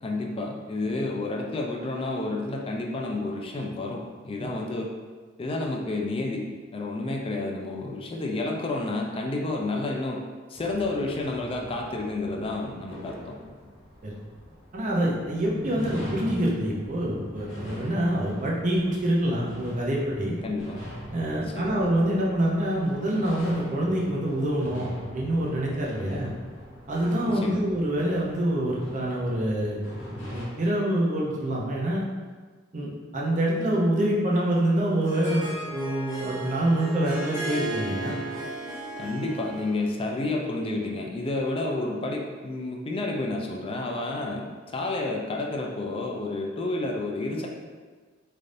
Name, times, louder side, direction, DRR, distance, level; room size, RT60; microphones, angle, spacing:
voice 1, 0.0-4.9 5.4-10.2 10.5-13.4 20.4-20.8 21.4-21.8 26.0-26.3 27.3-27.6 39.0-47.5, left 2 dB, 25° left, 0 dB, 0.3 m, -30 dB
sound 1, 10.5-30.5, equal, 65° left, 1.2 m, -42 dB
voice 2, 14.7-20.4 21.1-26.3 26.9-29.8 30.1-32.0 32.7-38.2, right 1 dB, 40° right, -4 dB, 0.6 m, -26 dB
Harp, 34.6-39.9, right 2 dB, 10° right, 1.2 m, -35 dB
3.2 x 2.6 x 2.5 m, 1.4 s
head